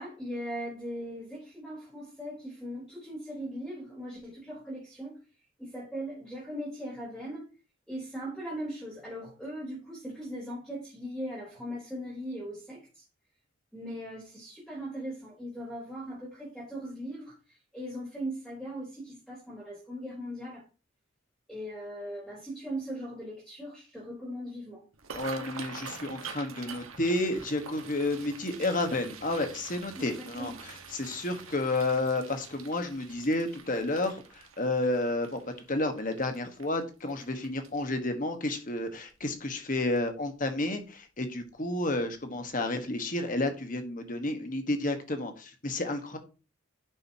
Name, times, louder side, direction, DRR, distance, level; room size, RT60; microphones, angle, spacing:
voice 1, 0.0-5.1 5.6-7.4 7.9-13.0 13.7-17.4 17.7-20.6 21.5-24.8 30.0-30.6, equal, ahead, -9 dB, 3.4 m, -39 dB
sound 1, 24.9-38.1 38.5-38.8 39.1-39.6 40.0-40.1 41.3-41.5 41.9-42.0 42.5-42.6, right 6 dB, 85° right, 1.4 m, -46 dB
voice 2, 25.1-35.4 35.7-46.2, left 2 dB, 40° left, 6 dB, 1.4 m, -31 dB
10.5 x 6.5 x 2.9 m, 0.33 s
head